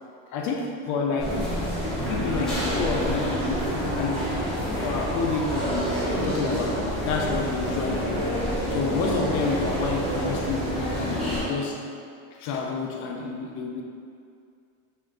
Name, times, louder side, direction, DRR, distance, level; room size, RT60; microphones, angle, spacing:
voice 1, 0.3-1.4 2.0-3.6 4.0-8.3 8.7-11.8 12.4-13.8, left 4 dB, 50° left, 1 dB, 0.4 m, -29 dB
sound 1, 1.2-11.4, equal, ahead, 0.7 m, -28 dB
3.2 x 2.5 x 3.7 m, 2.4 s
cardioid pair, 145°, 39 cm